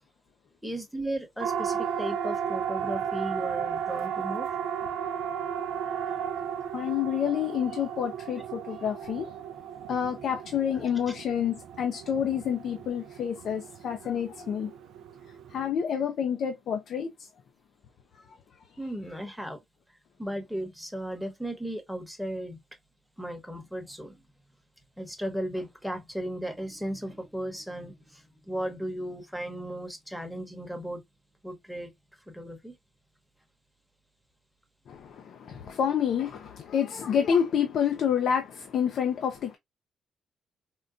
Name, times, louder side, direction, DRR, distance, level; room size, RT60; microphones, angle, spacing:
voice 1, 0.6-4.6 18.8-19.6 20.2-22.6 23.2-24.2 25.0-31.0 31.4-31.9 32.3-32.8, right 1 dB, ahead, 0.9 m, -35 dB
Siren, 1.4-15.7, right 8 dB, 80° right, 0.3 m, -34 dB
voice 2, 6.7-9.3 9.9-14.7 15.5-17.3 18.1-18.4 34.9-39.6, left 8 dB, 65° left, 0.4 m, -28 dB
3.7 x 2.2 x 2.3 m
cardioid pair, 90°, 0 cm